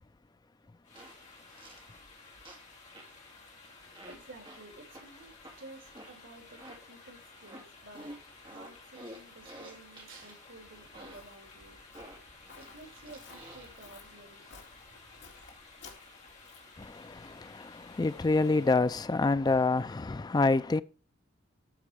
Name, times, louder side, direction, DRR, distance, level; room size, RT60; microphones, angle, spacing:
sound 1, 0.8-18.9, left 3 dB, 40° left, 2.9 m, -54 dB
sound 2, 0.9-1.1 1.5-1.9 2.4-2.7 2.9-3.2 3.9-4.2 4.4-4.6 4.9-5.0 5.4-5.6 5.9-6.2 6.5-6.8 7.5-7.6 7.9-10.4 10.9-11.2 11.9-13.8, right 1 dB, 25° right, 2.2 m, -49 dB
voice 1, 3.7-15.3, right 2 dB, 70° right, 3.5 m, -53 dB
Walk footsteps, 10.5-16.8, left 4 dB, 60° left, 2.3 m, -56 dB
voice 2, 16.8-20.8, left 3 dB, 20° left, 0.3 m, -27 dB
12.5 x 4.7 x 3.3 m
head